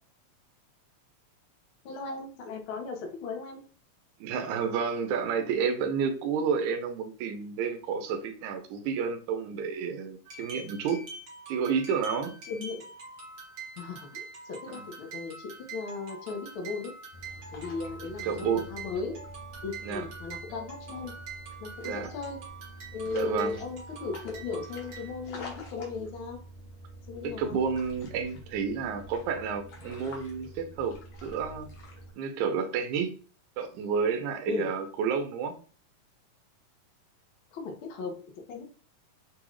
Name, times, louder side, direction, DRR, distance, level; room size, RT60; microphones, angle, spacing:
voice 1, 1.8-3.6 12.4-12.9 13.8-16.9 17.5-19.2 19.6-21.1 21.6-22.4 22.9-26.4 27.1-27.6 34.5-34.7 37.5-38.6, left 4 dB, 85° left, 2 dB, 1.1 m, -37 dB
voice 2, 4.2-11.0 11.5-12.4 18.2-18.6 19.8-20.0 21.8-22.1 23.1-23.5 27.2-31.0 31.2-31.7 32.2-33.1 33.6-35.6, right 6 dB, 75° right, 5 dB, 2.0 m, -30 dB
sound 1, 10.2-25.3, right 4 dB, 55° right, 1.3 m, -45 dB
sound 2, 17.1-32.1, equal, 60° left, 1.7 m, -47 dB
6.0 x 2.4 x 3.2 m, 0.41 s
omnidirectional pair, 3.8 m